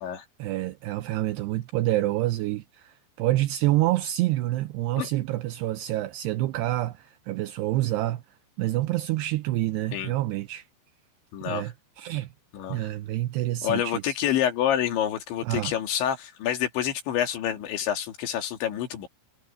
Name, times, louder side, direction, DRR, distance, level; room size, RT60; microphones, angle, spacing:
voice 1, 0.4-8.2 8.6-10.6 11.4-12.3 12.7-14.2 15.4-15.7, right 16 dB, 80° right, 2.6 m, -27 dB
voice 2, 11.3-11.7 12.5-12.9 13.6-19.1, left 10 dB, 80° left, 4.8 m, -28 dB
omnidirectional pair, 5.3 m